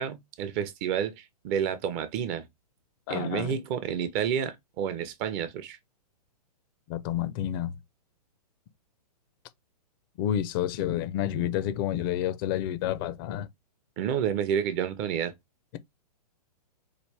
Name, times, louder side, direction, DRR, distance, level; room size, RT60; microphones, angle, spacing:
voice 1, 0.0-2.5 3.1-5.8 14.0-15.3, right 8 dB, 30° right, 0.7 m, -30 dB
voice 2, 3.1-3.6 6.9-7.7 10.2-13.5, left 11 dB, 35° left, 0.6 m, -29 dB
4.9 x 2.5 x 3.3 m
figure-of-eight pair, 115°, 21 cm